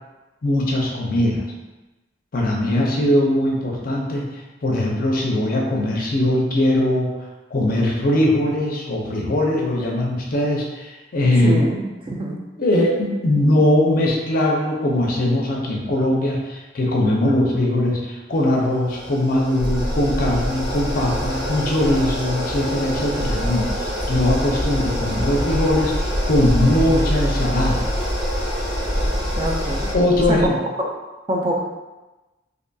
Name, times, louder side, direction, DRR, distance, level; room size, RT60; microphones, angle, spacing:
voice 1, 0.4-1.4 2.3-4.2 4.6-7.1 7.5-11.6 12.6-25.9 26.3-27.8 29.9-30.6, left 1 dB, 50° left, -2 dB, 0.5 m, -20 dB
voice 2, 11.2-12.4 29.3-29.9 30.3-30.4 30.8-30.9 31.3-31.6, right 1 dB, 25° right, -1 dB, 0.3 m, -25 dB
sound 1, 18.3-29.9, equal, ahead, 1.1 m, -26 dB
one second rain drop, 19.6-22.5 22.8-30.5, equal, 60° right, 1.4 m, -28 dB
2.6 x 2.6 x 2.2 m, 1.1 s
head